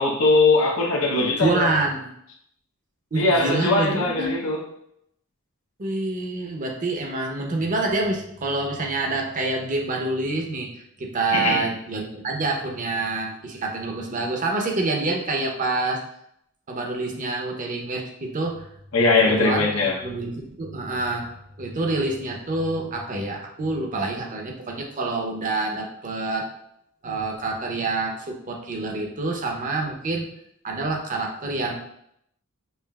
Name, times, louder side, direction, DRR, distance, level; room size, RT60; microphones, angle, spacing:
voice 1, 0.0-1.7 3.2-4.6 11.3-11.6 18.9-19.9, left 3 dB, 80° left, 0.8 m, -20 dB
voice 2, 1.4-2.1 3.1-4.4 5.8-16.0 16.7-18.7 19.2-26.5 27.0-30.3 30.6-31.8, right 2 dB, 40° right, 0.6 m, -27 dB
5.5 x 2.4 x 2.3 m
head